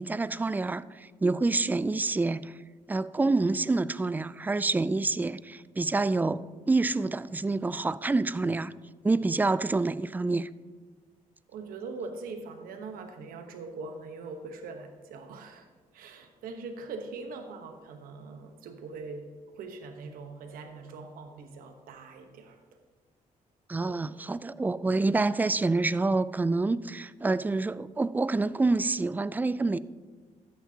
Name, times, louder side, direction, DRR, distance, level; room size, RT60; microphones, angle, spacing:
voice 1, 0.0-2.6 2.9-8.7 9.0-10.5 23.7-29.8, right 3 dB, 10° right, 0.3 m, -27 dB
voice 2, 11.5-15.7 15.9-19.3 19.5-22.6 23.8-24.1, right 4 dB, 90° right, 1.1 m, -42 dB
13.0 x 9.0 x 2.8 m
cardioid pair, 80°, 14 cm